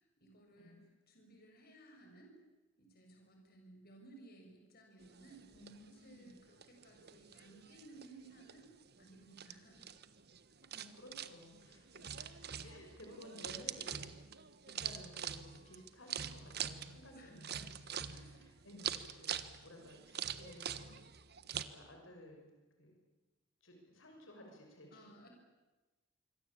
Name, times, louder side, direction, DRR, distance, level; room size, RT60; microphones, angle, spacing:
voice 1, 0.0-2.3 2.8-5.5 5.8-8.7 9.0-9.9 17.1-17.7 18.1-18.4 24.9-25.3, right 2 dB, 50° left, 2 dB, 7.0 m, -59 dB
sound 1, 5.0-21.6, right 8 dB, 55° right, 1.4 m, -45 dB
voice 2, 5.5-6.3 10.7-14.0 14.7-18.2 18.6-21.0 21.4-22.5 22.8-23.0 23.6-25.1, left 1 dB, 90° left, 2 dB, 6.5 m, -56 dB
26.5 x 24.0 x 8.7 m, 1.1 s
head